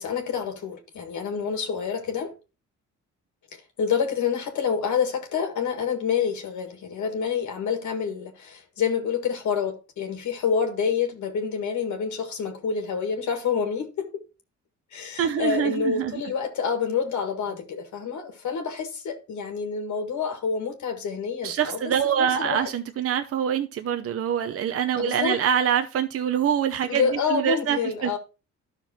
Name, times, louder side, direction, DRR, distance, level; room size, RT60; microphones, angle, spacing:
voice 1, 0.0-2.3 3.8-14.1 14.9-21.8 22.2-22.7 25.0-25.4 26.9-28.2, left 6 dB, 75° left, 1.8 m, -27 dB
voice 2, 15.2-16.2 21.4-28.2, right 8 dB, 50° right, 0.7 m, -25 dB
12.0 x 5.8 x 2.8 m
cardioid pair, 90°, 30 cm